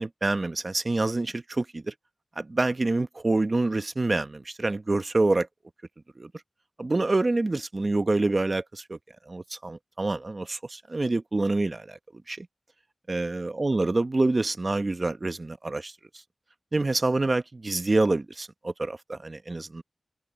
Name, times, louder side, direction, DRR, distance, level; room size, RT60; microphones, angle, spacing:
voice 1, 0.0-1.9 2.4-5.5 6.2-6.3 6.8-9.0 9.3-12.5 13.1-15.9 16.7-19.8, right 2 dB, 40° right, 0.9 m, -27 dB
open air
wide cardioid pair, 75°, 0 cm